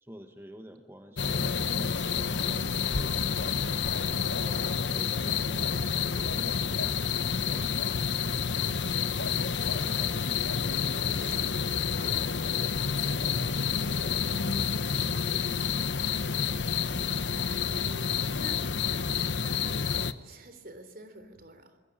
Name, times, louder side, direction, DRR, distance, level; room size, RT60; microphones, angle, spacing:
voice 1, 0.0-3.6 4.4-7.9 9.7-16.1 16.4-17.1, equal, 15° right, 6 dB, 1.4 m, -49 dB
sound 1, 1.2-20.1, left 6 dB, 85° left, 1.1 m, -29 dB
voice 2, 9.3-10.2 17.6-18.6 19.4-19.8 20.2-21.8, right 2 dB, 55° right, 10 dB, 3.5 m, -48 dB
Chewing mastication, 10.9-16.4, right 8 dB, 75° right, 5.1 m, -57 dB
27.0 x 21.0 x 9.0 m, 1.3 s
head